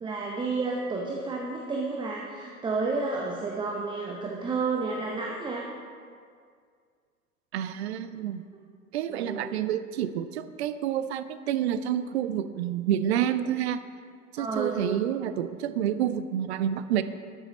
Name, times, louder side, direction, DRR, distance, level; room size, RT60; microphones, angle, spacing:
voice 1, 0.0-5.7 9.1-9.5 14.4-14.8, right 3 dB, 10° right, -1 dB, 0.8 m, -31 dB
voice 2, 7.5-8.5 8.9-13.8 14.3-17.0, right 10 dB, 50° right, 12 dB, 0.6 m, -28 dB
12.5 x 7.0 x 4.0 m, 2.1 s
figure-of-eight pair, 85°, 43 cm